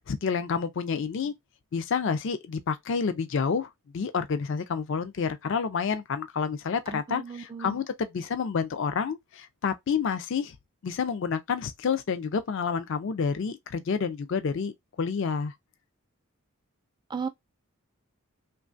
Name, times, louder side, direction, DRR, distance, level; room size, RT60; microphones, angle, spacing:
voice 1, 0.1-1.3 1.7-10.5 10.8-15.5, left 6 dB, 55° left, 0.4 m, -29 dB
voice 2, 6.9-7.8 17.1-17.3, right 5 dB, 20° right, 0.3 m, -35 dB
3.0 x 2.3 x 2.4 m
head